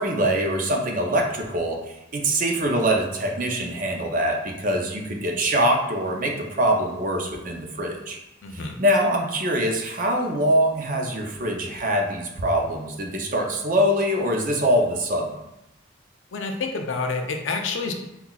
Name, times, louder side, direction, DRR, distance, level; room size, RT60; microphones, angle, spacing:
voice 1, 0.0-1.8 2.1-8.2 8.5-15.3, right 1 dB, 40° right, 1 dB, 0.5 m, -23 dB
voice 2, 8.4-8.8 16.3-17.9, left 4 dB, 70° left, 3 dB, 0.5 m, -28 dB
5.5 x 2.3 x 2.3 m, 0.90 s
head